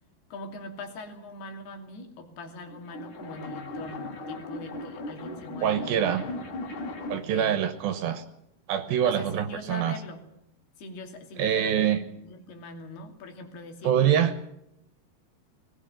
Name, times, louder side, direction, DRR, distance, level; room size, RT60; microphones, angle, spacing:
voice 1, 0.3-6.3 7.1-7.6 9.0-10.2 10.8-13.9, left 2 dB, 80° left, 5 dB, 4.6 m, -42 dB
sound 1, 2.6-7.4, left 2 dB, 55° left, 4.1 m, -38 dB
voice 2, 5.6-6.2 7.1-8.3 8.7-10.0 11.4-12.0 13.8-14.3, right 9 dB, 75° right, 11 dB, 2.7 m, -25 dB
19.5 x 19.0 x 9.1 m, 0.80 s
omnidirectional pair, 4.6 m